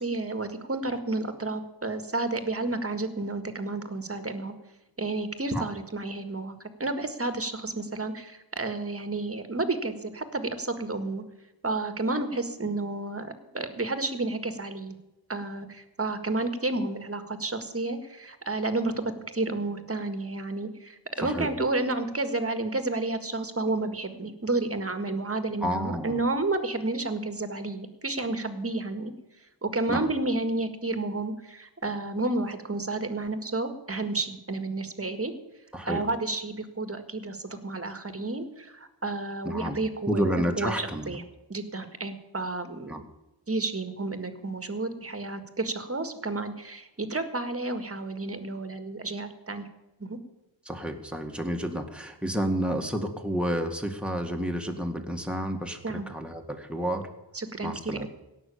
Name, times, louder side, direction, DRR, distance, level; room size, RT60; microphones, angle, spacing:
voice 1, 0.0-4.5 5.0-11.2 11.6-14.9 15.3-29.1 29.6-35.3 35.9-40.3 40.6-41.2 41.5-43.0 43.5-49.6 50.0-50.2 55.8-56.1 57.3-58.1, right 2 dB, 30° right, 9 dB, 1.7 m, -31 dB
voice 2, 21.2-21.5 25.6-26.2 29.9-30.1 35.7-36.0 39.4-39.8 40.1-41.2 42.9-43.0 50.7-57.1 57.6-58.1, equal, ahead, 3 dB, 1.9 m, -30 dB
17.0 x 6.3 x 8.6 m, 0.98 s
wide cardioid pair, 70°, 45 cm